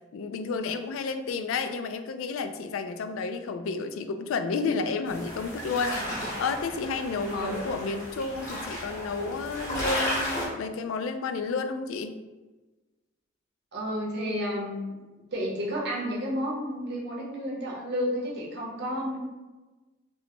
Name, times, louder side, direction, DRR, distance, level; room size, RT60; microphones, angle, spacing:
voice 1, 0.1-12.2, left 4 dB, 90° left, 9 dB, 0.3 m, -31 dB
sound 1, 5.1-10.5, left 1 dB, 40° left, 1.2 m, -34 dB
voice 2, 7.3-7.6 13.7-14.9 15.3-19.2, equal, 60° right, -3 dB, 1.0 m, -31 dB
5.3 x 2.2 x 3.0 m, 1.2 s
head